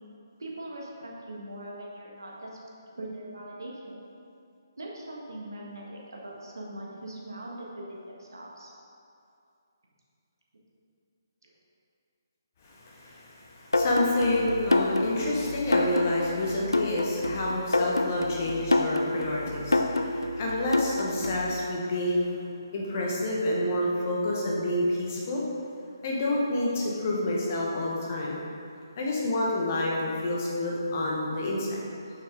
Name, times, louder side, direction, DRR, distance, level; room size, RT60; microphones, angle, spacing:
voice 1, 0.4-2.5 3.0-4.0 4.8-8.7 21.9-22.0 22.9-23.1, right 1 dB, 65° right, -3 dB, 1.5 m, -41 dB
voice 2, 12.6-22.4 22.7-25.4 26.0-28.4 29.0-31.8, left 1 dB, 35° left, -3 dB, 1.3 m, -28 dB
sound 1, 13.7-21.5, left 2 dB, 80° left, 0.5 m, -27 dB
6.7 x 5.9 x 3.8 m, 2.6 s
figure-of-eight pair, 140°, 2 cm